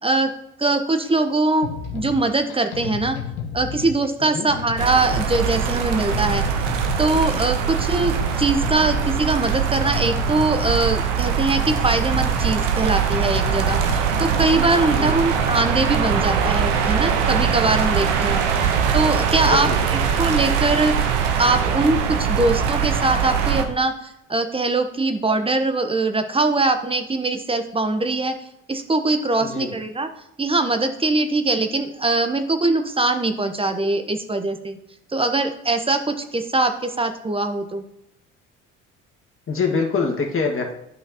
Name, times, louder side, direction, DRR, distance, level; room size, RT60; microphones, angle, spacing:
voice 1, 0.0-0.3 0.6-3.2 3.5-6.5 7.0-18.4 18.9-21.0 21.4-28.4 28.7-30.1 30.4-34.8 35.1-37.8, right 2 dB, 15° right, 8 dB, 0.9 m, -22 dB
sound 1, 1.6-15.6, left 7 dB, 70° left, 1.1 m, -33 dB
sound 2, 4.8-23.6, right 7 dB, 75° right, 1.0 m, -22 dB
voice 2, 19.4-19.8 29.4-29.8 39.5-40.7, left 4 dB, 35° left, 1 dB, 1.7 m, -24 dB
11.0 x 5.6 x 2.9 m, 0.82 s
hypercardioid pair, 55°, 37 cm